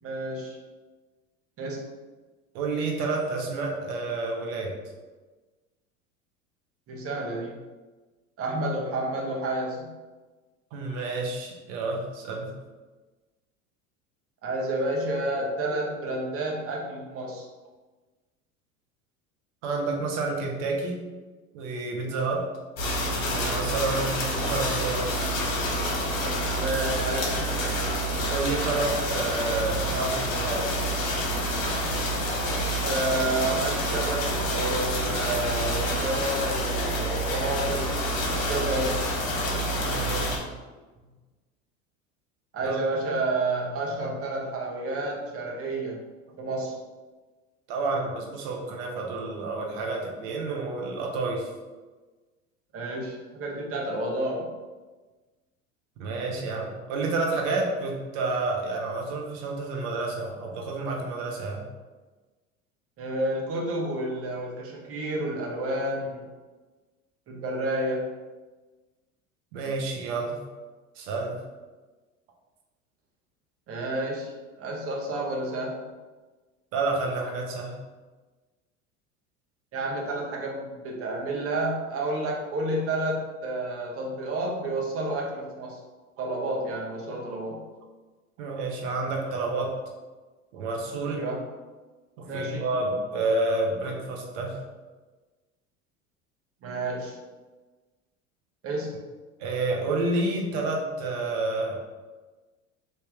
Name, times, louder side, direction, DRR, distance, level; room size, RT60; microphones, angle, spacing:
voice 1, 0.0-0.6 1.6-1.9 6.9-7.6 8.4-9.9 14.4-17.4 26.5-27.4 32.8-38.0 38.3-38.9 42.5-46.0 46.4-46.8 52.7-54.5 63.0-66.3 67.3-68.0 73.7-74.3 74.6-75.8 79.7-85.8 86.2-87.7 91.1-91.4 92.2-92.7 96.6-97.2 98.6-99.0, right 2 dB, 35° right, -1 dB, 1.1 m, -30 dB
voice 2, 2.5-4.7 10.7-12.5 19.6-21.0 21.5-22.5 23.2-25.1 28.3-30.8 39.7-40.4 42.6-42.8 47.7-51.5 56.0-61.6 69.5-70.4 71.0-71.4 76.7-77.8 88.4-89.8 90.5-91.2 92.2-94.6 99.4-101.8, right 3 dB, 60° right, 0 dB, 1.0 m, -29 dB
sound 1, 22.8-40.4, equal, 70° left, 1.0 m, -28 dB
3.5 x 2.7 x 3.5 m, 1.3 s
hypercardioid pair, 75°, 40 cm